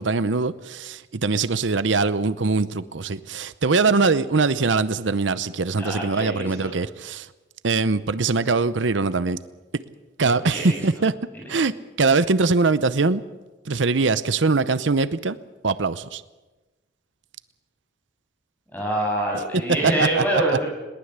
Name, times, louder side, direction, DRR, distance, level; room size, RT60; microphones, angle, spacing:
voice 1, 0.0-7.3 7.6-9.4 10.2-11.1 11.5-11.7 12.0-13.2 13.7-15.4 15.6-16.2 19.8-20.4, right 4 dB, 85° right, 14 dB, 0.8 m, -22 dB
voice 2, 5.8-6.7 10.3-10.8 18.7-20.7, right 1 dB, 10° left, -1 dB, 7.4 m, -25 dB
21.0 x 19.0 x 8.1 m, 1.2 s
head